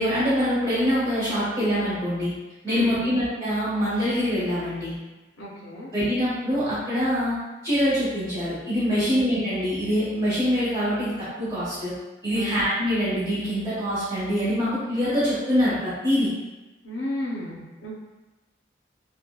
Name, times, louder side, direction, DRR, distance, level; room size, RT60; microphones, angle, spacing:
voice 1, 0.0-2.3 2.6-4.9 5.9-7.4 7.6-12.0 12.2-16.3, equal, 25° right, -14 dB, 1.1 m, -24 dB
voice 2, 2.7-3.1 5.4-5.9 8.9-9.1 12.3-12.5 16.8-18.0, equal, 75° left, -4 dB, 0.5 m, -33 dB
2.8 x 2.1 x 2.2 m, 1.1 s
head